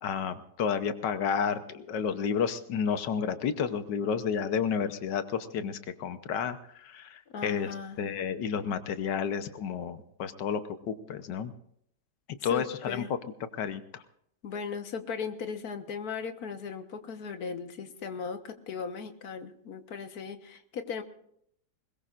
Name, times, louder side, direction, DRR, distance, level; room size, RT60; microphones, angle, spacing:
voice 1, 0.0-10.6 10.9-11.5 12.4-13.0 13.5-14.0, left 7 dB, 85° left, 10 dB, 1.6 m, -31 dB
voice 2, 7.3-8.0 12.4-13.1 14.4-21.0, left 6 dB, 60° left, 8 dB, 1.7 m, -37 dB
21.5 x 20.0 x 2.5 m, 0.71 s
omnidirectional pair, 1.8 m